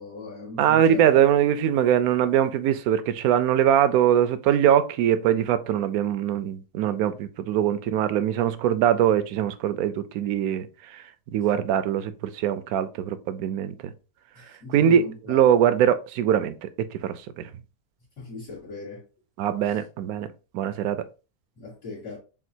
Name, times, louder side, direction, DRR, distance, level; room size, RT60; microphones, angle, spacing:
voice 1, 0.0-1.1 14.4-15.4 18.2-19.0 19.6-19.7 21.6-22.2, left 3 dB, 65° left, 2.1 m, -39 dB
voice 2, 0.6-10.7 10.9-11.0 11.3-13.9 14.7-17.4 19.4-20.3 20.5-21.0, right 10 dB, 80° right, 1.0 m, -22 dB
7.2 x 2.5 x 2.7 m
omnidirectional pair, 1.5 m